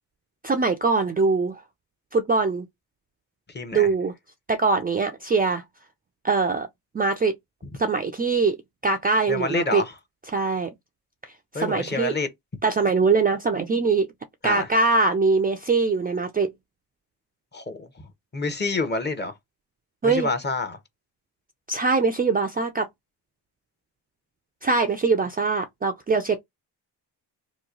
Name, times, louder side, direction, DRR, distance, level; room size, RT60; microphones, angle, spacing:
voice 1, 0.4-1.6 2.1-2.7 3.7-4.1 4.5-5.6 6.2-6.7 6.9-7.4 7.8-8.6 8.8-9.8 10.3-10.7 11.5-12.2 12.6-14.1 14.4-16.5 20.0-20.3 21.7-22.9 24.6-26.4, right 4 dB, 20° right, 0.4 m, -22 dB
voice 2, 3.5-3.9 9.3-9.9 11.5-12.3 14.4-14.7 17.5-17.9 18.3-19.3 20.0-20.8, left 3 dB, 25° left, 0.8 m, -27 dB
3.0 x 2.2 x 3.7 m
cardioid pair, 85°, 44 cm